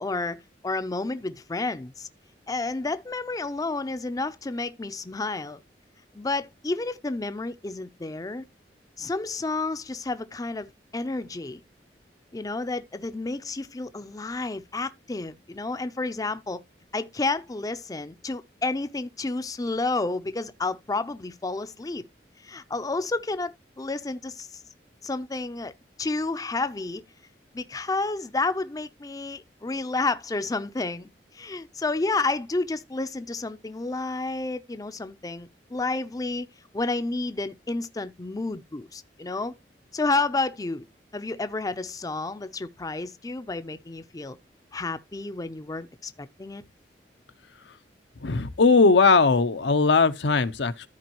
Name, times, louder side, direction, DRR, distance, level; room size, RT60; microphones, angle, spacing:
voice 1, 0.0-2.1 2.5-5.6 6.1-8.4 9.0-11.6 12.3-16.6 16.9-22.0 22.4-24.6 25.0-25.7 26.0-27.0 27.5-36.5 36.7-39.5 39.9-40.9 41.1-44.4 44.7-46.6, left 3 dB, 20° left, 0.5 m, -30 dB
voice 2, 48.2-50.9, left 4 dB, 80° left, 0.7 m, -19 dB
13.5 x 4.6 x 2.9 m
head